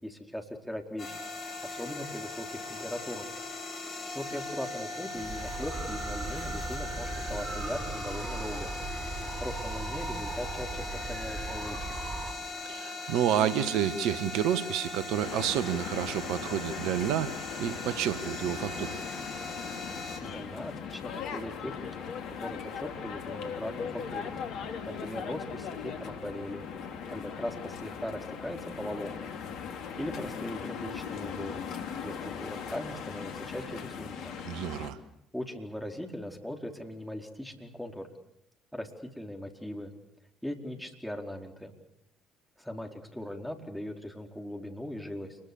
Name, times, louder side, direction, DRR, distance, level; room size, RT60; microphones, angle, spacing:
voice 1, 0.0-1.2 1.6-3.3 4.1-8.7 9.4-12.0 20.2-24.3 24.6-26.6 27.1-29.3 30.0-31.6 32.0-34.3 35.3-38.1 38.7-39.9 40.4-41.7 42.6-45.4, left 1 dB, 5° left, 2 dB, 4.6 m, -39 dB
sound 1, 1.0-20.2, left 3 dB, 50° left, 6.6 m, -39 dB
sound 2, 5.2-12.3, right 3 dB, 45° right, 4.4 m, -38 dB
voice 2, 12.7-18.9 34.4-35.0, right 10 dB, 70° right, 13 dB, 1.4 m, -29 dB
sound 3, 15.2-34.9, left 7 dB, 65° left, 2.8 m, -39 dB
29.0 x 21.5 x 7.2 m, 0.79 s
hypercardioid pair, 55°, 0 cm